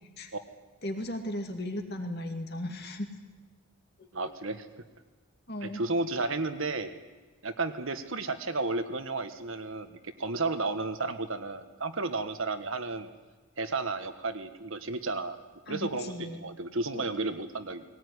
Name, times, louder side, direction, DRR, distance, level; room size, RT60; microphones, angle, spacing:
voice 1, 0.8-3.1 4.0-4.1 5.5-5.8 15.7-16.4 16.9-17.1, left 1 dB, 45° left, 5 dB, 2.4 m, -36 dB
voice 2, 4.1-4.7 5.6-6.9 7.4-13.1 13.6-15.4 15.7-17.8, right 3 dB, 65° right, 9 dB, 1.5 m, -32 dB
19.5 x 18.0 x 9.7 m, 1.3 s
head